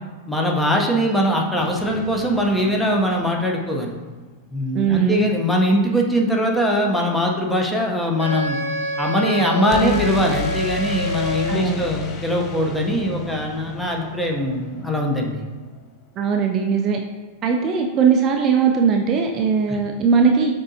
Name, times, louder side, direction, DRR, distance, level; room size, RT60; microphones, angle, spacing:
voice 1, 0.3-3.9 4.5-8.6 9.0-15.5 19.7-19.8, equal, 5° left, 0 dB, 0.7 m, -21 dB
sound 1, 1.6-3.6 9.7-15.5, left 5 dB, 35° left, 0.5 m, -33 dB
voice 2, 4.7-5.3 9.8-10.0 11.5-11.9 16.2-17.0 17.4-20.5, right 6 dB, 35° right, 2 dB, 0.4 m, -19 dB
Wind instrument woodwind instrument, 8.2-11.7, equal, 80° left, 1.0 m, -27 dB
7.0 x 2.6 x 2.7 m, 1.3 s
figure-of-eight pair, 95°, 0 cm